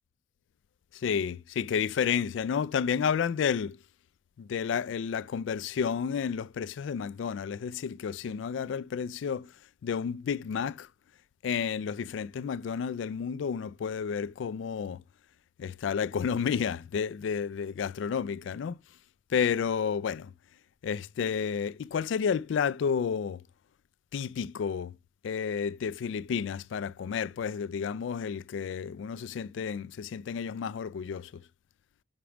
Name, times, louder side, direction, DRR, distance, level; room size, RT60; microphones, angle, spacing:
voice 1, 0.9-3.8 4.4-9.5 9.8-10.9 11.4-15.0 15.6-18.8 19.3-20.3 20.8-23.4 24.1-25.0 25.2-31.4, left 7 dB, 65° left, 0.3 m, -31 dB
6.0 x 5.1 x 4.8 m
head